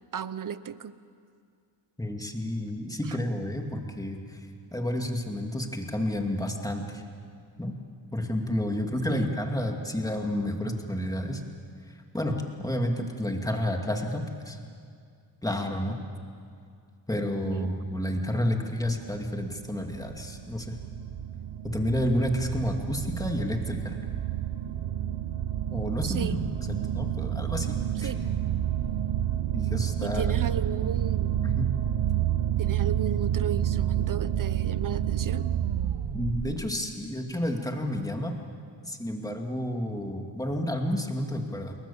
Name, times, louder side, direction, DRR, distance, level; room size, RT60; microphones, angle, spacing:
voice 1, 0.1-0.9 3.0-3.2 9.1-9.3 17.4-17.7 26.0-26.4 28.0-28.2 30.0-31.3 32.6-35.5, right 7 dB, 45° right, 15 dB, 0.8 m, -34 dB
voice 2, 2.0-4.5 4.7-7.0 7.6-7.7 8.1-11.4 12.1-14.6 15.4-16.0 17.1-20.7 21.6-24.0 25.7-28.1 29.5-30.4 31.5-31.7 36.1-38.3 38.9-41.8, left 1 dB, 10° left, 2 dB, 2.4 m, -30 dB
sound 1, 19.2-36.6, right 11 dB, 70° right, 1.0 m, -29 dB
28.5 x 21.5 x 7.2 m, 2.3 s
wide cardioid pair, 125°, 46 cm